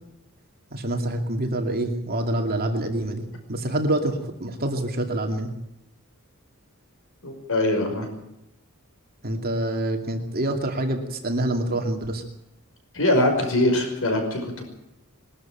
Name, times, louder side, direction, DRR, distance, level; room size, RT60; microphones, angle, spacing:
voice 1, 0.7-3.2 3.5-5.5 9.2-12.2, right 1 dB, 45° right, 4 dB, 2.6 m, -26 dB
voice 2, 7.2-8.1 12.9-14.6, left 1 dB, 65° left, 4 dB, 5.4 m, -22 dB
22.0 x 13.0 x 9.0 m, 0.87 s
head